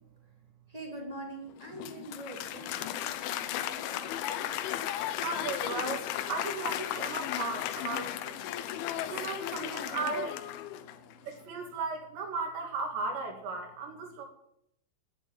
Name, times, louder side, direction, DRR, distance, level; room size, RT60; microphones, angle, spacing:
voice 1, 0.7-4.6, right 1 dB, 20° right, 1 dB, 0.9 m, -45 dB
Applause, 1.6-11.1, left 12 dB, 80° left, 3.1 m, -35 dB
voice 2, 5.2-8.4 9.1-10.4 11.2-14.2, right 4 dB, 65° right, 4 dB, 4.4 m, -36 dB
11.0 x 10.0 x 8.9 m, 0.74 s
omnidirectional pair, 5.7 m